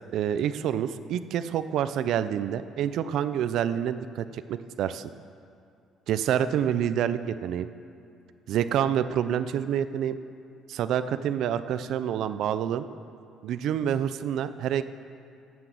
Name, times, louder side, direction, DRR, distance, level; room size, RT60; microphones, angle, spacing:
voice 1, 0.1-5.1 6.1-7.7 8.5-10.2 10.7-12.9 13.4-14.8, right 9 dB, 60° right, 12 dB, 0.4 m, -27 dB
16.5 x 6.1 x 7.6 m, 2.5 s
cardioid pair, 160°, 0 cm